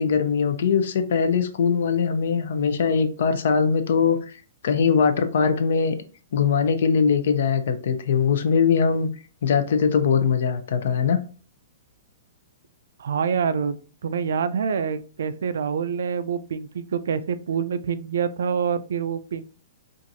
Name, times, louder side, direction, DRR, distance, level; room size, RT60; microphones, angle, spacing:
voice 1, 0.0-4.2 4.6-6.0 6.3-9.1 9.4-11.2, left 6 dB, 65° left, 9 dB, 0.6 m, -21 dB
voice 2, 13.0-13.8 14.0-19.4, right 6 dB, 75° right, 13 dB, 0.3 m, -26 dB
4.4 x 2.5 x 2.6 m, 0.37 s
hypercardioid pair, 165°, 0 cm